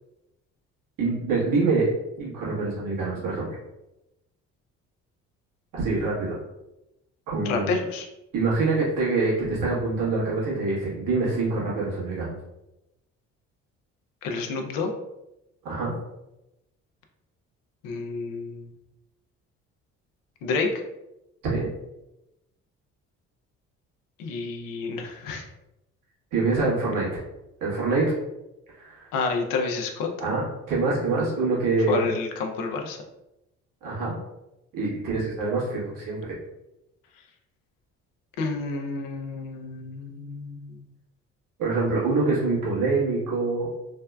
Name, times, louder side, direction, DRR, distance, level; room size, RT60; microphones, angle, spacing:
voice 1, 1.0-1.9 2.2-3.4 5.7-6.4 7.3-7.6 8.3-12.3 15.6-15.9 21.4-21.7 26.3-27.1 27.6-28.0 28.7-29.1 30.2-32.1 33.8-34.2 34.7-36.3 41.6-43.7, right 3 dB, 65° right, -6 dB, 1.4 m, -25 dB
voice 2, 7.4-8.1 14.2-14.9 17.8-18.7 20.4-20.7 24.2-25.5 29.1-30.1 31.9-33.0 38.4-40.8, left 4 dB, 70° left, 4 dB, 0.6 m, -29 dB
3.5 x 2.1 x 2.2 m, 0.91 s
hypercardioid pair, 55°, 35 cm